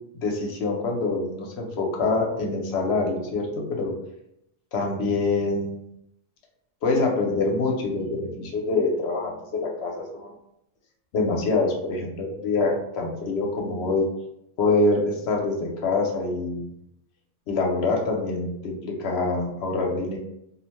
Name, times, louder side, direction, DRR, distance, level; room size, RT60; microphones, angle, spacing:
voice 1, 0.2-3.9 4.7-5.9 6.8-10.3 11.1-14.1 14.6-16.7 17.5-20.2, left 3 dB, 70° left, 1 dB, 0.8 m, -25 dB
2.6 x 2.1 x 2.9 m, 0.79 s
omnidirectional pair, 1.2 m